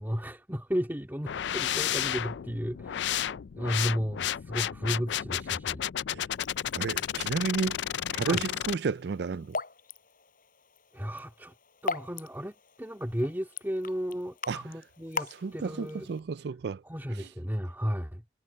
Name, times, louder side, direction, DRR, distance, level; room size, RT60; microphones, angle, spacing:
voice 1, 0.0-3.3 3.5-5.8 6.1-6.3 8.2-8.4 10.9-11.5 11.8-16.1 16.8-18.2, equal, 10° right, 2.2 m, -34 dB
sound 1, 1.3-8.8, left 11 dB, 75° left, 0.4 m, -32 dB
Raindrop / Drip, 6.3-16.2, left 4 dB, 50° left, 5.3 m, -41 dB
voice 2, 6.7-7.8 8.1-9.6 14.5-14.6 15.4-16.8, right 5 dB, 65° right, 0.4 m, -31 dB
head